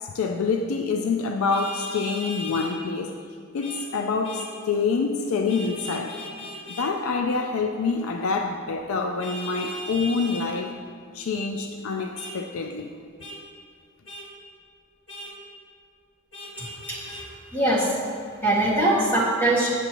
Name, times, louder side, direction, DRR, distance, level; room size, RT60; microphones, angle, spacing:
voice 1, 0.0-3.1 3.5-6.2 6.8-10.7 11.1-12.9, left 4 dB, 80° left, 4 dB, 0.4 m, -26 dB
Vehicle horn car horn honking, 1.5-2.7 3.6-3.8 4.2-4.5 5.5-6.9 9.2-10.5 12.1-12.3 13.2-13.4 14.0-14.2 15.1-15.3 16.3-17.2, left 1 dB, 60° left, 1.6 m, -37 dB
voice 2, 17.5-17.9 18.4-19.7, right 1 dB, 10° left, -8 dB, 1.8 m, -22 dB
7.9 x 7.3 x 2.9 m, 2.1 s
head